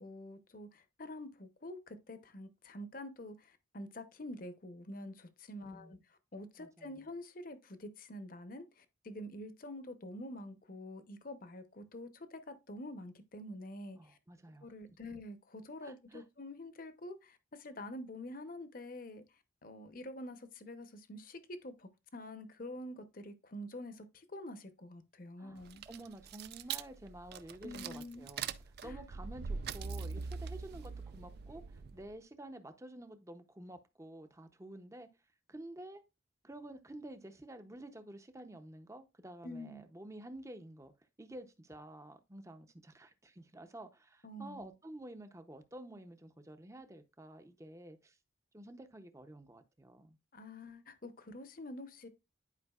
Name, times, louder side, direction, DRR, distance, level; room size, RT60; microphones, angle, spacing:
voice 1, 0.0-6.0 6.3-14.2 14.6-19.2 19.6-25.8 27.6-28.3 28.8-29.0 39.4-39.8 44.2-44.7 50.3-52.1, left 1 dB, 45° left, 0.8 m, -47 dB
voice 2, 5.7-6.0 6.6-6.9 14.0-14.7 15.8-16.2 25.4-28.5 28.8-35.1 35.5-36.0 36.4-40.9 41.2-48.2 48.5-50.2, right 1 dB, 15° right, 0.6 m, -50 dB
sound 1, 25.6-32.1, right 5 dB, 55° right, 0.4 m, -43 dB
10.5 x 5.0 x 2.4 m
head